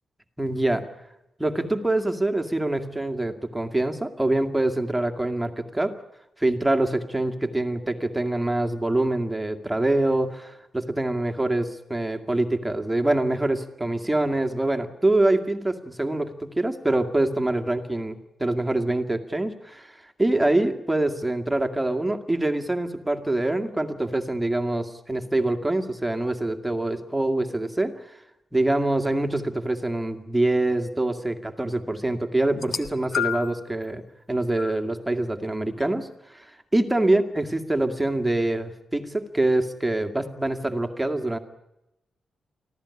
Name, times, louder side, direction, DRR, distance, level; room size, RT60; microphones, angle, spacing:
voice 1, 0.4-0.8 1.4-5.9 6.4-27.9 28.5-34.0 34.3-36.5 36.7-41.4, right 2 dB, 5° right, 5 dB, 2.2 m, -25 dB
sound 1, 32.5-33.7 34.6-34.8 35.8-35.9, left 8 dB, 45° left, 1.5 m, -30 dB
25.0 x 15.5 x 9.8 m, 0.88 s
wide cardioid pair, 125°, 0 cm